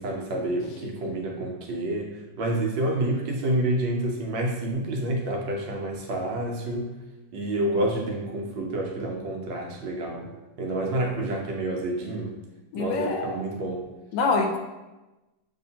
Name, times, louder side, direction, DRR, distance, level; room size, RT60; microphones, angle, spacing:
voice 1, 0.0-6.9 7.3-10.3 10.6-12.3 12.7-13.8, right 1 dB, 80° right, 0 dB, 1.5 m, -28 dB
voice 2, 12.7-13.4 14.1-14.6, left 3 dB, 75° left, 3 dB, 1.2 m, -25 dB
6.8 x 2.8 x 2.8 m, 1.1 s
omnidirectional pair, 2.0 m